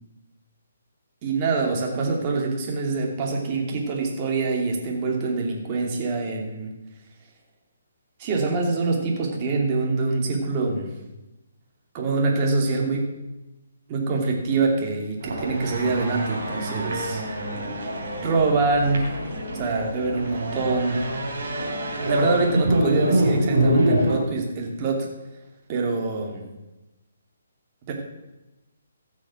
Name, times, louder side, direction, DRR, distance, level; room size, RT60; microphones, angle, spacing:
voice 1, 1.2-6.7 8.2-10.9 11.9-13.0 13.9-17.2 18.2-19.1 19.5-21.0 22.1-25.1 25.7-26.4 27.9-28.0, right 3 dB, 30° right, 0 dB, 2.7 m, -25 dB
sound 1, 15.2-24.2, right 1 dB, 60° right, 2.9 m, -25 dB
16.0 x 6.3 x 6.2 m, 1.0 s
figure-of-eight pair, 135°, 0 cm